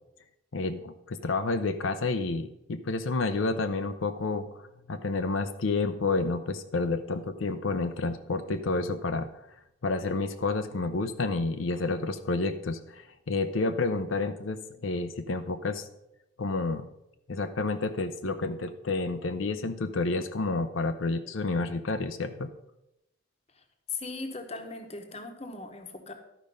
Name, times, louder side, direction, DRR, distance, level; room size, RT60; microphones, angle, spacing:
voice 1, 0.5-9.3 9.8-15.9 16.4-16.9 17.3-22.5, left 3 dB, 90° left, 9 dB, 0.6 m, -30 dB
voice 2, 23.9-26.1, left 3 dB, 30° left, 6 dB, 1.0 m, -38 dB
12.0 x 5.1 x 5.3 m, 0.86 s
head